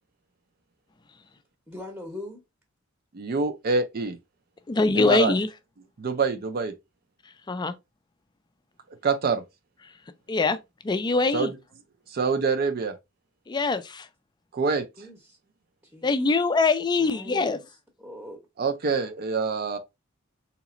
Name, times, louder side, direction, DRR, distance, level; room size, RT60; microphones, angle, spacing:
voice 1, 1.7-2.4 15.0-15.2 15.9-16.1 17.0-17.6 18.0-18.4, left 2 dB, 5° right, 0.8 m, -40 dB
voice 2, 3.1-4.2 4.9-5.3 6.0-6.7 9.0-9.4 11.3-11.6 12.1-12.9 14.5-14.8 18.6-19.8, right 4 dB, 50° right, 0.4 m, -25 dB
voice 3, 4.7-5.5 7.5-7.7 10.3-10.6 10.8-11.5 13.5-14.1 16.0-17.6, left 3 dB, 20° left, 0.4 m, -23 dB
3.9 x 2.9 x 2.5 m
head